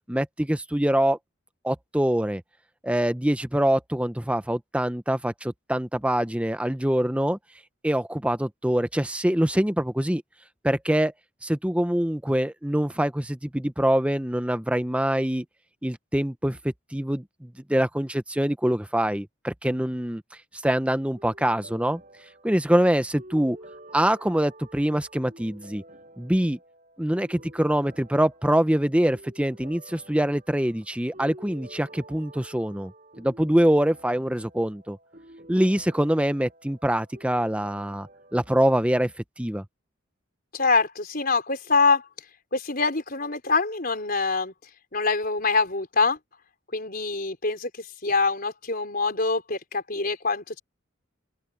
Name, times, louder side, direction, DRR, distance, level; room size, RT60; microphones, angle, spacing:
voice 1, 0.1-1.2 1.6-2.4 2.8-7.4 7.8-10.2 10.6-11.1 11.4-15.4 15.8-16.6 16.9-20.2 20.5-22.0 22.4-23.6 23.9-25.8 26.2-26.6 27.0-32.9 33.2-35.0 35.5-39.1 39.4-39.6, right 1 dB, 5° right, 0.8 m, -24 dB
sound 1, 21.2-38.6, right 1 dB, 40° right, 6.5 m, -49 dB
voice 2, 40.5-42.1 42.5-44.5 44.9-46.2 46.7-50.6, left 4 dB, 45° left, 4.8 m, -25 dB
open air
head